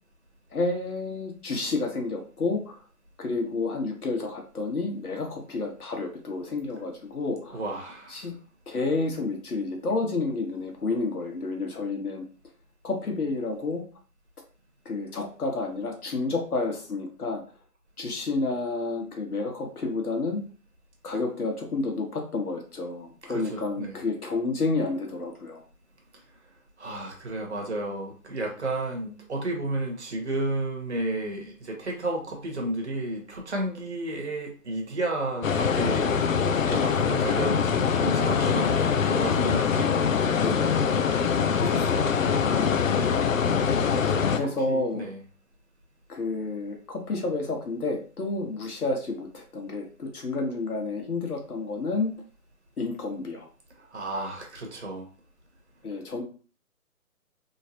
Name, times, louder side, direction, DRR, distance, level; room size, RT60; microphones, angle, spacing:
voice 1, 0.5-2.8 3.2-7.8 8.1-8.3 8.7-12.2 12.8-13.8 14.8-17.4 18.0-20.4 21.0-25.6 40.3-41.0 41.5-42.1 44.2-45.0 46.1-52.1 52.8-53.5 55.8-56.2, left 3 dB, 85° left, 2 dB, 1.4 m, -30 dB
voice 2, 7.5-8.2 23.3-24.0 26.8-40.1 41.0-41.1 42.3-42.9 44.0-45.2 53.8-55.1, right 1 dB, 50° right, 0 dB, 1.3 m, -32 dB
sound 1, 35.4-44.4, left 6 dB, 65° left, 0.5 m, -23 dB
3.2 x 3.1 x 2.8 m, 0.39 s
hypercardioid pair, 170°, 43 cm